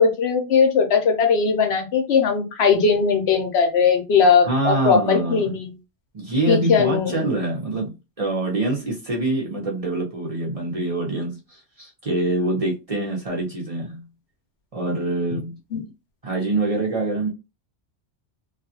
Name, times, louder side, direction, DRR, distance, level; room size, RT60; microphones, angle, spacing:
voice 1, 0.0-5.7 6.5-7.2 15.7-15.8, left 5 dB, 70° left, 0.9 m, -19 dB
voice 2, 4.4-5.6 6.1-14.0 14.7-15.6 16.2-17.3, right 2 dB, 35° right, 0.7 m, -25 dB
2.4 x 2.3 x 2.7 m
omnidirectional pair, 1.2 m